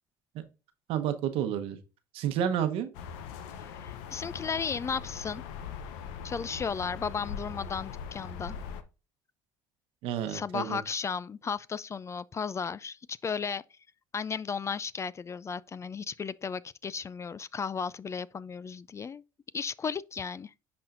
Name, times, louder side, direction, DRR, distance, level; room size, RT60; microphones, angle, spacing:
voice 1, 0.9-1.8 2.1-2.9 10.0-10.8, right 9 dB, 70° right, 1.0 m, -30 dB
sound 1, 2.9-8.8, left 7 dB, 80° left, 0.7 m, -41 dB
voice 2, 3.6-5.4 6.2-8.6 10.3-13.6 14.1-19.2 19.5-20.5, left 6 dB, 30° left, 0.3 m, -35 dB
10.5 x 4.3 x 2.5 m
hypercardioid pair, 70°, 10 cm